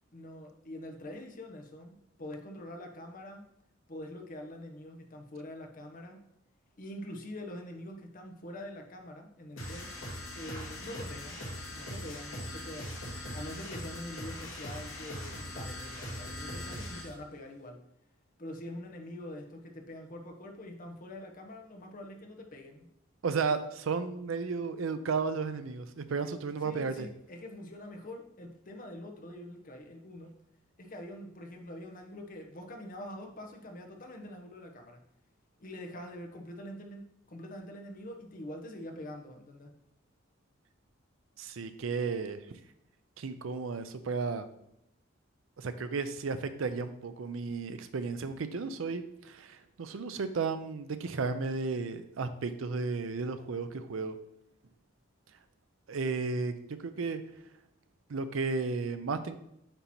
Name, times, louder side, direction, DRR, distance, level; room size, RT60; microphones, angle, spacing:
voice 1, 0.1-3.5 3.9-6.2 6.8-9.9 10.3-11.4 11.7-12.9 13.3-17.8 18.4-22.9 26.6-30.3 30.8-35.0 35.6-39.7, left 1 dB, 45° left, 3 dB, 0.9 m, -45 dB
sound 1, 9.6-17.1, left 1 dB, 70° left, 1.7 m, -41 dB
voice 2, 23.2-27.1 41.4-42.4 43.2-44.5 45.6-54.2 55.9-56.5 56.8-57.2 58.1-59.4, right 4 dB, 80° right, 10 dB, 0.5 m, -33 dB
8.8 x 3.0 x 4.2 m, 0.79 s
head